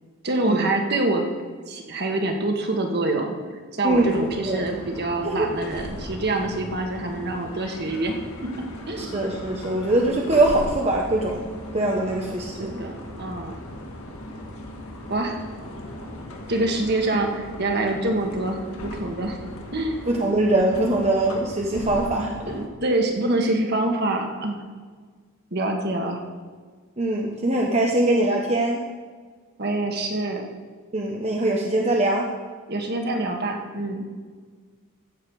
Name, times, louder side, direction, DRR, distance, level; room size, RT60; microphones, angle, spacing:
voice 1, 0.2-1.2 1.7-3.4 3.7-8.2 8.9-9.1 12.6-13.5 15.1-15.4 16.5-19.4 19.7-20.1 22.4-24.6 25.5-26.2 29.6-30.5 32.7-34.0, right 2 dB, 50° right, 3 dB, 1.6 m, -25 dB
voice 2, 3.8-4.2 4.4-4.6 5.2-5.5 9.0-11.5 11.7-12.8 20.1-22.3 27.0-28.8 30.9-32.3, right 2 dB, 30° right, -1 dB, 0.9 m, -22 dB
sound 1, 3.9-22.7, left 1 dB, 90° left, 1.7 m, -38 dB
15.0 x 7.3 x 4.8 m, 1.5 s
head